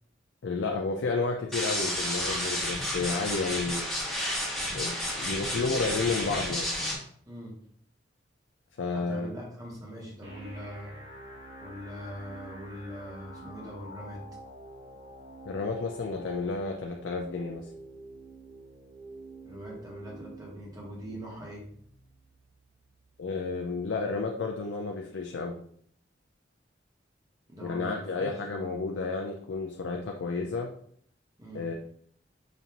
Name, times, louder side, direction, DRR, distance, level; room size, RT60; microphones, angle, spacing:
voice 1, 0.4-3.8 4.7-6.7 8.8-9.3 15.5-17.6 23.2-25.5 27.6-30.7 31.5-31.7, left 4 dB, 80° left, 2 dB, 0.4 m, -31 dB
sound 1, 1.5-6.9, equal, ahead, 1.1 m, -31 dB
voice 2, 8.9-10.9 11.6-14.2 19.4-21.6 27.5-28.3 31.4-31.6, equal, 20° right, -3 dB, 1.2 m, -42 dB
sound 2, 10.2-24.2, right 1 dB, 80° right, 1.7 m, -48 dB
5.2 x 2.6 x 2.9 m, 0.63 s
head